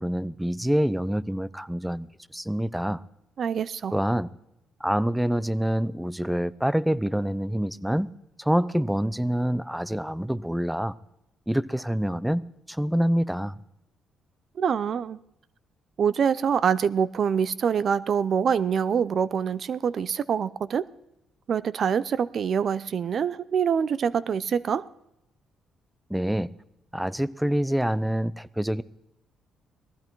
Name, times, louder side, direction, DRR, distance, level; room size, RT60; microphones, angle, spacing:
voice 1, 0.0-2.1 2.3-3.0 3.9-4.3 4.8-8.1 8.4-10.9 11.5-12.4 12.7-13.5 26.1-26.5 26.9-28.8, equal, 5° right, 0.6 m, -26 dB
voice 2, 3.4-4.0 14.6-15.2 16.0-20.9 21.5-24.9, right 7 dB, 55° right, 0.5 m, -25 dB
18.5 x 15.0 x 4.6 m
cardioid pair, 90°, 0 cm